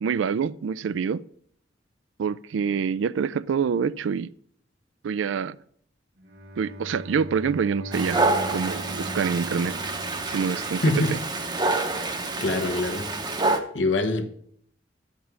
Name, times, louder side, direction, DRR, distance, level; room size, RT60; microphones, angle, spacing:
voice 1, 0.0-1.2 2.2-4.3 5.0-5.6 6.6-9.8 10.3-10.8, right 6 dB, 90° right, 0.4 m, -26 dB
Bowed string instrument, 6.2-11.2, equal, 55° right, 1.0 m, -40 dB
Dog, 7.9-13.6, right 3 dB, 25° right, 0.8 m, -27 dB
voice 2, 10.8-11.2 12.0-12.1 12.4-13.1 13.7-14.3, left 2 dB, 80° left, 1.1 m, -24 dB
12.0 x 5.2 x 6.1 m
head